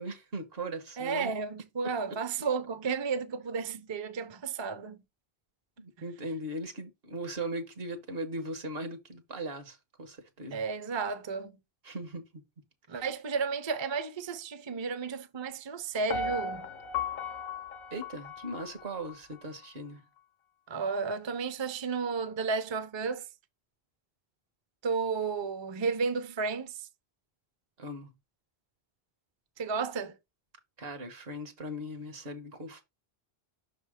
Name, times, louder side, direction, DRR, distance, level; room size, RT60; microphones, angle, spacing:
voice 1, 0.0-1.3 5.8-10.6 11.8-12.2 12.9-13.1 17.9-20.0 27.8-28.1 30.8-32.8, right 1 dB, 70° right, 1.4 m, -39 dB
voice 2, 1.0-5.0 10.5-11.5 12.9-16.7 20.7-23.3 24.8-26.9 29.6-30.2, right 5 dB, 35° right, 0.5 m, -33 dB
Piano, 16.1-19.2 19.6-19.7, left 4 dB, 70° left, 0.8 m, -36 dB
6.2 x 3.3 x 4.9 m
omnidirectional pair, 1.0 m